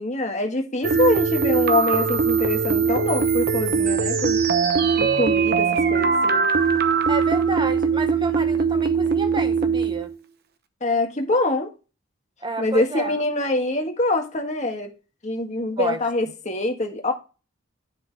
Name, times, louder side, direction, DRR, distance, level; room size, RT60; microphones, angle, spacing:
voice 1, 0.0-4.4 5.0-6.5 10.8-11.7 12.6-14.9 15.2-17.1, left 2 dB, 35° left, 1.6 m, -24 dB
sound 1, 0.8-10.1, right 5 dB, 50° right, 0.9 m, -21 dB
voice 2, 7.1-10.1 12.4-13.2 15.8-16.0, right 2 dB, 20° right, 1.1 m, -29 dB
10.5 x 5.8 x 3.4 m
head